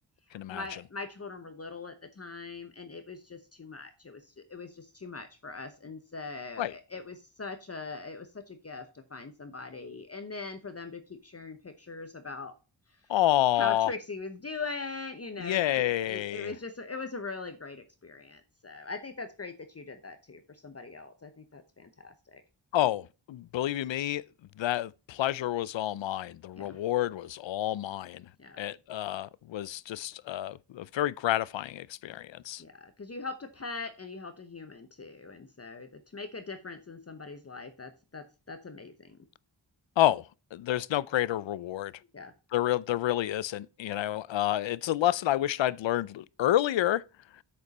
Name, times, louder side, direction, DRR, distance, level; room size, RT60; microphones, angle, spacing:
voice 1, 0.5-4.2 4.5-12.5 13.5-22.4 26.6-26.8 28.4-28.6 32.6-39.2 42.1-42.3, left 4 dB, 35° left, 1.0 m, -41 dB
voice 2, 13.1-13.9 15.4-16.5 22.7-24.2 24.6-28.3 28.6-32.6 40.0-41.9 42.5-47.0, left 13 dB, 80° left, 0.5 m, -29 dB
7.7 x 6.7 x 4.2 m
wide cardioid pair, 75°, 44 cm